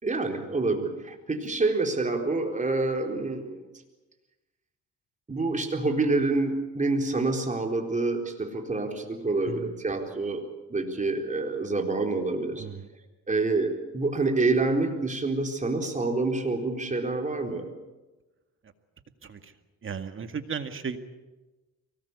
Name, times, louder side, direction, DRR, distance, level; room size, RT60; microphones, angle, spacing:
voice 1, 0.0-3.6 5.3-10.4 10.7-12.7 13.3-17.7, right 3 dB, 25° right, 3 dB, 4.2 m, -27 dB
voice 2, 12.6-12.9 19.2-19.5 19.8-21.0, right 6 dB, 40° right, 8 dB, 2.1 m, -35 dB
23.5 x 19.0 x 8.3 m, 1.1 s
cardioid pair, 90°, 30 cm